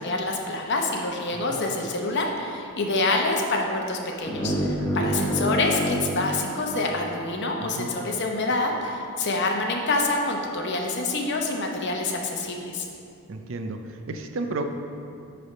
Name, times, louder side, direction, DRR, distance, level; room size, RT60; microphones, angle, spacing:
voice 1, 0.0-12.9, left 2 dB, 50° left, 1 dB, 0.8 m, -26 dB
sound 1, 4.2-7.3, equal, 15° left, 0.7 m, -28 dB
voice 2, 4.8-5.2 7.6-7.9 13.3-14.6, right 3 dB, 60° right, 6 dB, 0.5 m, -33 dB
8.8 x 3.4 x 5.3 m, 2.6 s
head